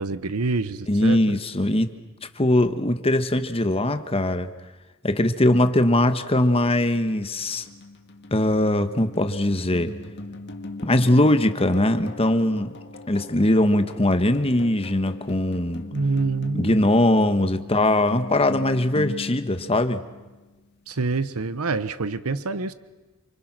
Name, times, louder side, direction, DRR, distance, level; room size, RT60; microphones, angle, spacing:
voice 1, 0.0-1.4 15.9-16.8 20.9-22.7, right 3 dB, 80° right, 13 dB, 0.9 m, -26 dB
voice 2, 0.9-1.9 2.4-4.5 5.0-7.7 8.3-9.9 10.8-12.7 13.1-15.8 16.5-20.0, left 1 dB, 25° left, 9 dB, 1.2 m, -21 dB
sound 1, 6.4-20.6, left 2 dB, 50° left, 1.9 m, -40 dB
29.0 x 25.0 x 6.1 m, 1.2 s
head